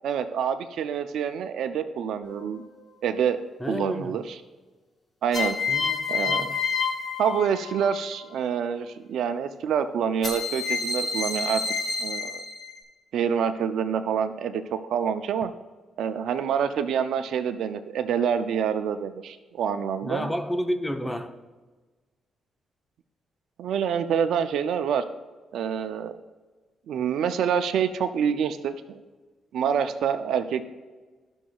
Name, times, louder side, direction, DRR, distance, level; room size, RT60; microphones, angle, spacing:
voice 1, 0.0-2.6 3.0-3.4 3.7-4.4 5.2-5.6 6.1-6.5 7.2-11.6 12.0-12.4 13.1-14.6 14.9-15.5 16.0-20.3 23.6-25.0 25.5-26.1 26.9-29.0 29.5-30.7, right 7 dB, 80° right, 0.4 m, -27 dB
sound 1, 2.2-2.8 5.3-8.0 10.2-12.8, left 5 dB, 45° left, 1.9 m, -29 dB
voice 2, 3.6-4.2 5.7-6.0 6.3-6.5 20.0-21.3, equal, 15° left, 0.8 m, -30 dB
12.5 x 6.1 x 2.3 m
cardioid pair, 70°, 0 cm